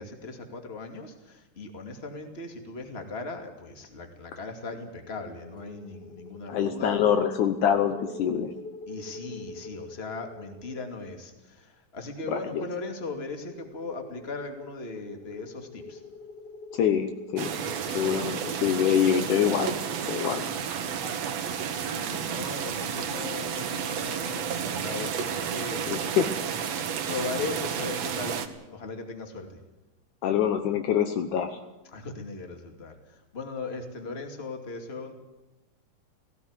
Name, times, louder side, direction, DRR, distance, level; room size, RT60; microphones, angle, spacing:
voice 1, 0.0-7.0 8.9-16.0 21.8-26.1 27.1-29.6 31.9-35.1, left 3 dB, 20° left, 4 dB, 2.3 m, -38 dB
sound 1, 5.0-11.2 13.4-20.5, left 3 dB, 45° left, 1.4 m, -45 dB
voice 2, 6.5-8.5 12.3-12.6 16.7-17.5 17.9-19.8 20.1-20.5 25.9-26.3 30.2-31.6, left 9 dB, 70° left, 7 dB, 2.4 m, -25 dB
sound 2, 17.4-28.5, right 7 dB, 60° right, 2.2 m, -31 dB
17.5 x 17.0 x 9.7 m, 1.0 s
omnidirectional pair, 3.8 m